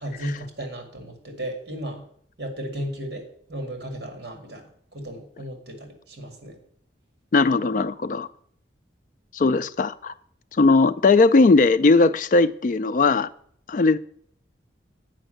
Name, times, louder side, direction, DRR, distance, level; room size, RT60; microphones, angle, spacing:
voice 1, 0.0-2.1 2.4-6.6, right 1 dB, 60° right, 2.2 m, -35 dB
voice 2, 7.3-8.3 9.3-10.1 10.6-13.3 13.7-14.0, left 3 dB, 45° left, 0.4 m, -18 dB
8.9 x 5.3 x 7.7 m
head